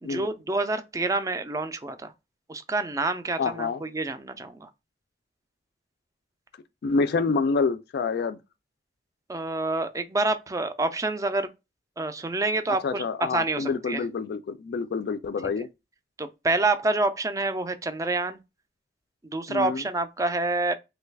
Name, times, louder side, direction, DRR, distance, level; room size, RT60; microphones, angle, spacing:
voice 1, 0.0-2.1 2.5-4.7 9.3-11.5 12.0-14.0 16.2-18.4 19.2-20.7, right 2 dB, 20° right, 0.3 m, -27 dB
voice 2, 3.4-3.8 6.8-8.4 12.8-15.7 19.5-19.8, left 4 dB, 60° left, 0.3 m, -27 dB
3.1 x 2.3 x 3.3 m
head